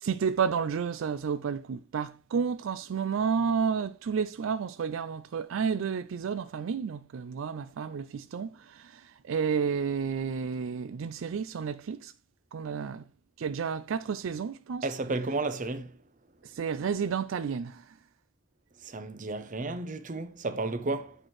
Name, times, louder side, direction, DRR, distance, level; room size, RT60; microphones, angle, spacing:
voice 1, 0.0-9.0 9.3-12.1 12.5-13.0 13.4-14.9 16.4-17.8, right 6 dB, 80° right, 0.4 m, -31 dB
voice 2, 14.8-15.9 18.8-21.2, right 3 dB, 40° right, 0.7 m, -32 dB
8.8 x 4.5 x 3.1 m
head